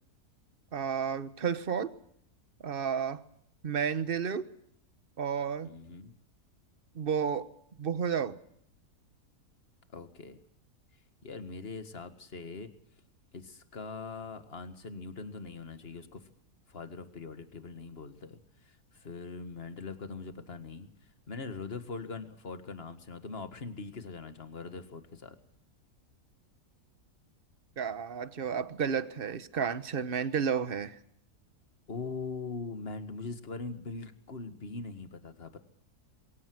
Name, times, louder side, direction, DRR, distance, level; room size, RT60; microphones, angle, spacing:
voice 1, 0.7-1.9 2.6-3.2 3.6-4.5 5.2-5.7 6.9-7.5 7.8-8.3 27.8-31.0, right 7 dB, 40° right, 14 dB, 1.2 m, -31 dB
voice 2, 5.6-6.1 9.9-10.4 11.2-12.7 13.3-16.2 16.7-20.9 21.3-25.4 31.9-35.6, left 4 dB, 40° left, 10 dB, 2.0 m, -42 dB
23.0 x 17.0 x 7.8 m, 0.69 s
omnidirectional pair, 1.7 m